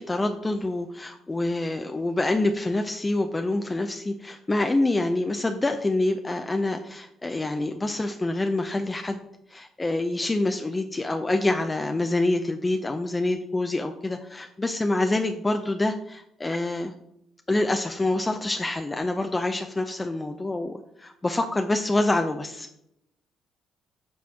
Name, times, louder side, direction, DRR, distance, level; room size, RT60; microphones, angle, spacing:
voice 1, 0.0-9.2 9.5-16.9 17.5-22.7, left 2 dB, 20° left, 5 dB, 0.6 m, -26 dB
7.6 x 3.4 x 5.8 m, 0.79 s
hypercardioid pair, 45°, 0 cm